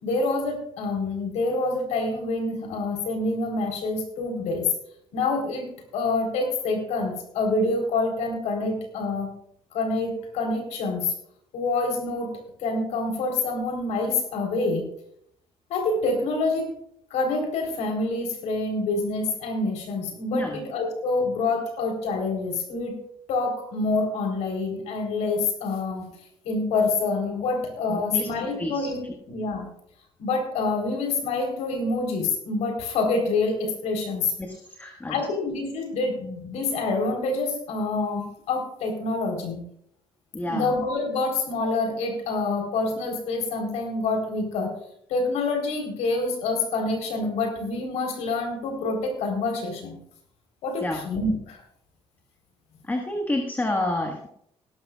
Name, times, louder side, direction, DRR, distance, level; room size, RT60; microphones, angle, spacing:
voice 1, 0.0-4.7 5.1-5.7 5.9-9.3 9.7-11.1 11.5-12.3 12.6-14.8 15.7-16.7 17.1-22.9 23.3-26.1 26.4-29.0 29.3-29.7 30.2-34.3 35.1-39.6 40.5-44.7 45.1-50.0 50.6-51.6, left 3 dB, 90° left, 3 dB, 4.0 m, -27 dB
voice 2, 27.9-28.3 28.6-28.9 34.4-35.1 40.3-40.7 50.8-51.0 52.8-54.3, left 1 dB, 15° left, 2 dB, 1.6 m, -29 dB
18.0 x 13.0 x 2.4 m, 0.71 s
cardioid pair, 100°, 11 cm